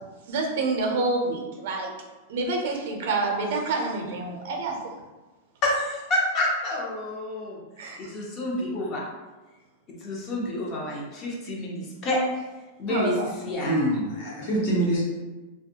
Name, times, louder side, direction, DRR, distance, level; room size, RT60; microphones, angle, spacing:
voice 1, 0.3-1.9 2.3-4.9 7.8-8.1 12.9-13.3, right 3 dB, 65° right, 1 dB, 0.6 m, -28 dB
voice 2, 5.6-9.0 10.0-12.2 12.8-13.1 13.4-13.8, left 1 dB, 30° left, -2 dB, 0.6 m, -29 dB
voice 3, 13.6-15.0, right 1 dB, 55° left, -5 dB, 1.0 m, -25 dB
2.5 x 2.3 x 2.8 m, 1.2 s
supercardioid pair, 155°, 0 cm